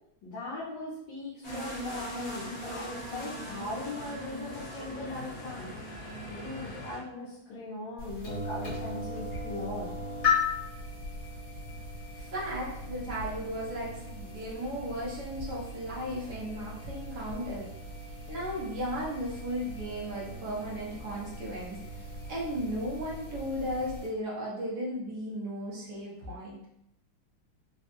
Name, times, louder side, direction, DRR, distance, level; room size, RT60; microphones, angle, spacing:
voice 1, 0.2-5.7 6.3-9.9, left 2 dB, 75° left, -8 dB, 1.5 m, -39 dB
sound 1, 1.4-7.0, equal, 30° left, 1.0 m, -39 dB
sound 2, 8.0-24.1, left 4 dB, 50° left, 1.5 m, -37 dB
voice 2, 12.1-17.7 18.3-26.6, equal, 65° right, -4 dB, 1.4 m, -35 dB
4.0 x 2.2 x 2.9 m, 0.77 s
omnidirectional pair, 2.1 m